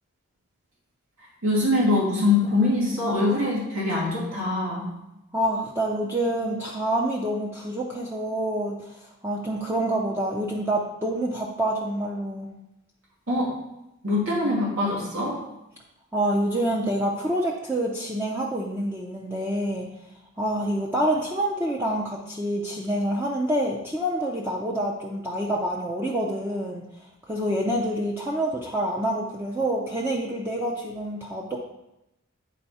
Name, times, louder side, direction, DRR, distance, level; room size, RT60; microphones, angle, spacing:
voice 1, 1.4-4.9 13.3-13.5 14.0-15.4, left 2 dB, 75° right, -5 dB, 2.5 m, -23 dB
voice 2, 5.3-12.5 16.1-19.9 20.4-26.8 27.3-31.6, right 1 dB, 10° right, -3 dB, 0.6 m, -27 dB
9.1 x 4.5 x 4.2 m, 0.89 s
head